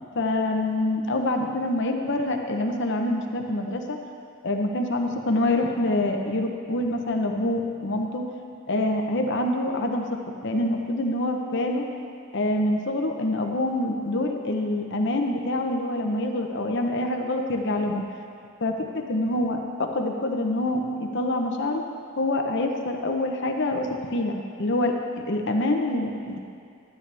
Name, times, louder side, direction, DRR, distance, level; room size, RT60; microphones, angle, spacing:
voice 1, 0.1-4.0 4.4-8.3 8.7-11.9 12.3-18.0 18.6-21.8 22.2-26.4, left 1 dB, 60° left, 3 dB, 0.9 m, -26 dB
12.0 x 9.8 x 3.4 m, 2.3 s
head